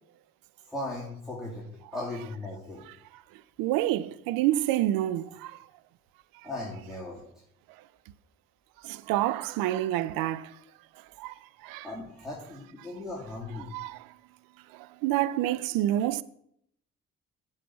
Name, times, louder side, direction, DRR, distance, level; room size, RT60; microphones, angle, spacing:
voice 1, 0.7-1.6 1.9-2.8 6.4-7.2 11.8-13.7, left 2 dB, ahead, 2.9 m, -37 dB
voice 2, 3.6-5.6 8.8-10.5 11.2-11.3 11.6-11.9 13.7-14.1 14.7-16.2, right 14 dB, 70° right, 0.6 m, -28 dB
8.3 x 4.9 x 7.2 m
hypercardioid pair, 45°, 35 cm